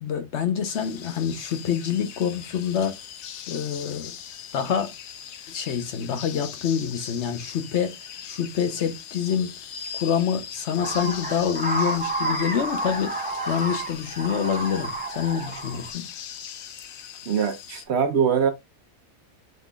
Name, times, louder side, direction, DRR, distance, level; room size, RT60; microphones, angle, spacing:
voice 1, 0.0-3.0 3.5-4.1 4.5-4.9 5.5-8.0 8.2-9.5 9.9-13.2 13.5-16.1, left 8 dB, 60° left, 1.0 m, -26 dB
sound 1, 0.6-17.8, left 9 dB, 85° left, 1.1 m, -40 dB
sound 2, 10.8-15.9, right 2 dB, 10° right, 0.5 m, -30 dB
voice 2, 17.3-18.5, right 7 dB, 55° right, 1.0 m, -22 dB
5.5 x 3.8 x 2.2 m
omnidirectional pair, 1.4 m